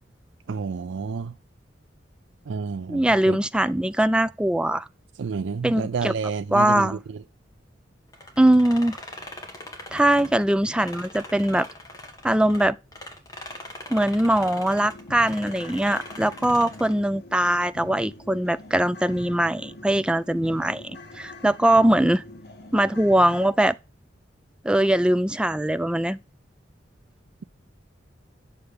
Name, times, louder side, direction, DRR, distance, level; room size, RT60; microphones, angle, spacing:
voice 1, 0.5-1.3 2.5-3.4 5.2-7.2, right 5 dB, 80° right, 0.4 m, -30 dB
voice 2, 2.9-4.9 5.6-6.1 6.5-7.0 8.4-8.9 9.9-11.7 12.2-12.8 13.9-22.2 22.7-23.8 24.6-26.2, right 1 dB, 5° right, 0.3 m, -21 dB
sound 1, 8.1-12.6 12.9-17.0, left 1 dB, 20° left, 1.8 m, -41 dB
sound 2, 13.5-13.6 14.0-14.1 14.4-23.5, left 1 dB, 60° left, 1.4 m, -43 dB
9.5 x 6.8 x 3.5 m
head